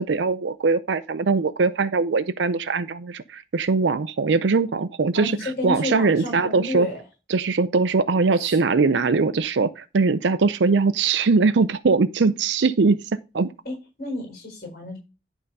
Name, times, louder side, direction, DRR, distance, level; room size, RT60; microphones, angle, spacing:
voice 1, 0.0-6.9 7.3-13.5, right 4 dB, 85° right, 0.5 m, -21 dB
voice 2, 5.1-7.0 8.4-8.6 13.6-15.0, left 1 dB, 55° left, 4.4 m, -31 dB
11.0 x 3.9 x 5.4 m
head